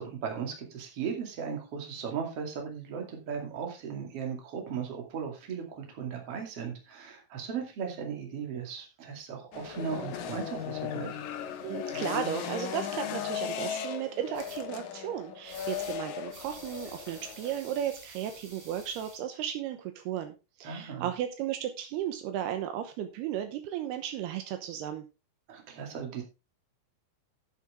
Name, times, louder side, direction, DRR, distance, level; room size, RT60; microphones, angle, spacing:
voice 1, 0.0-11.1 20.6-21.1 25.5-26.2, right 6 dB, 40° right, 2 dB, 2.9 m, -37 dB
sound 1, 9.5-17.6, left 9 dB, 70° left, 2.0 m, -37 dB
voice 2, 11.6-25.0, right 10 dB, 80° right, 7 dB, 2.9 m, -35 dB
sound 2, 14.3-14.6 15.5-16.0 16.3-19.2, right 2 dB, 20° right, 6.3 m, -49 dB
12.0 x 7.6 x 3.5 m, 0.28 s
omnidirectional pair, 4.8 m